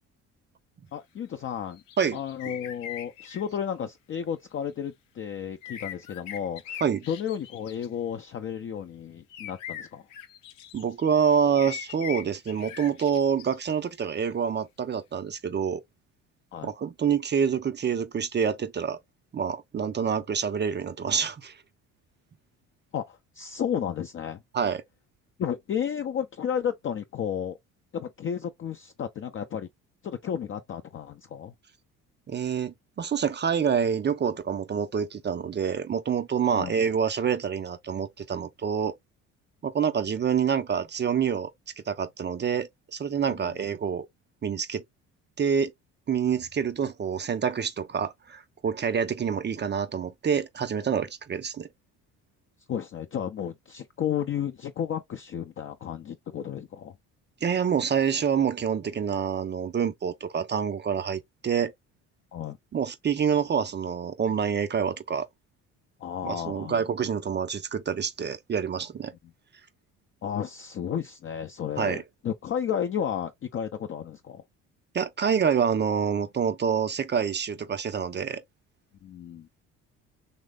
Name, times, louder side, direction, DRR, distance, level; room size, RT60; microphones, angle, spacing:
voice 1, 0.9-1.8 2.1-6.8 7.1-10.0 16.5-16.7 22.9-24.4 25.4-27.6 27.9-29.7 30.0-31.5 36.6-36.7 43.3-43.4 52.7-56.9 62.3-62.6 66.0-66.8 70.2-74.4 79.0-79.5, left 8 dB, 35° left, 0.5 m, -32 dB
sound 1, 1.7-3.4 5.6-7.9 9.3-11.1 11.5-13.6, left 10 dB, 90° left, 0.6 m, -41 dB
voice 2, 10.7-15.8 16.6-19.0 19.3-21.5 24.5-24.8 32.3-38.9 39.6-41.5 41.9-44.1 44.4-44.8 45.4-45.7 46.1-51.7 57.4-61.7 62.7-65.3 66.2-69.1 71.8-72.0 74.9-78.4, right 7 dB, 30° right, 0.5 m, -27 dB
3.1 x 2.0 x 3.6 m
hypercardioid pair, 60°, 38 cm